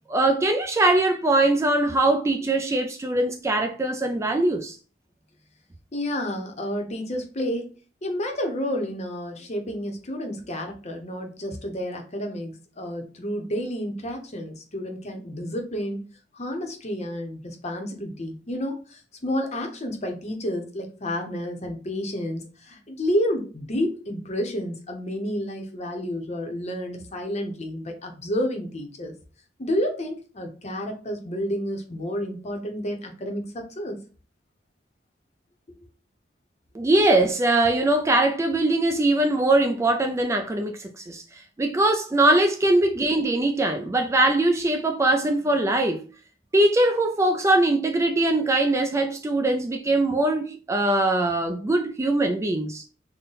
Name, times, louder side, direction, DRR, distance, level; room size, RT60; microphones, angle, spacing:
voice 1, 0.1-4.8 36.7-41.2 41.6-46.0 46.5-52.8, right 2 dB, 15° right, 0.3 m, -22 dB
voice 2, 5.9-7.7 8.0-16.0 16.3-29.1 29.6-34.0, equal, 35° left, 0.7 m, -30 dB
3.8 x 2.1 x 4.0 m
head